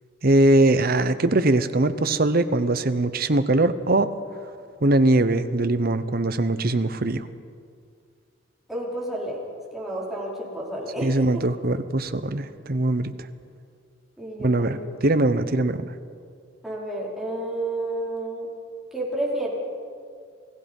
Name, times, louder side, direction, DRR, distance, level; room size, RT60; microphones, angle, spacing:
voice 1, 0.2-4.1 4.8-7.3 11.0-13.1 14.4-14.8 15.0-15.9, right 2 dB, 50° right, 11 dB, 1.0 m, -21 dB
voice 2, 8.7-9.4 9.7-11.1 14.2-14.9 16.6-18.5 18.9-19.5, right 1 dB, ahead, -5 dB, 4.8 m, -30 dB
28.5 x 18.0 x 5.5 m, 2.3 s
head